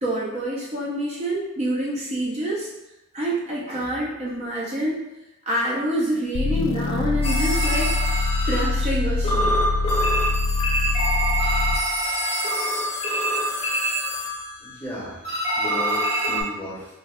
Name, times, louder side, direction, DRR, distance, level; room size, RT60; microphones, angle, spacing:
voice 1, 0.0-2.7 3.1-5.0 5.5-8.0 8.5-9.6, right 1 dB, 35° right, -5 dB, 0.5 m, -27 dB
sound 1, 6.3-12.0, left 3 dB, 70° left, 0.3 m, -24 dB
sound 2, 7.2-9.0 9.2-14.8 15.2-16.4, right 1 dB, 30° left, 0.6 m, -25 dB
voice 2, 14.6-15.2 15.6-17.0, equal, 10° left, -6 dB, 0.9 m, -35 dB
3.1 x 2.2 x 3.4 m, 0.96 s
head